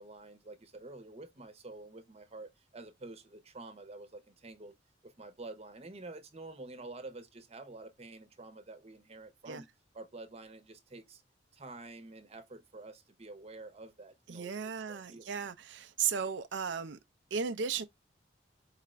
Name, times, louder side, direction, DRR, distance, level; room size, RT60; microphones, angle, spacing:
voice 1, 0.0-4.7 5.0-9.7 9.9-11.2 11.5-15.3, right 2 dB, 35° right, 0.9 m, -48 dB
voice 2, 14.3-17.0 17.3-17.8, right 6 dB, 75° right, 0.5 m, -35 dB
4.8 x 2.5 x 3.2 m
head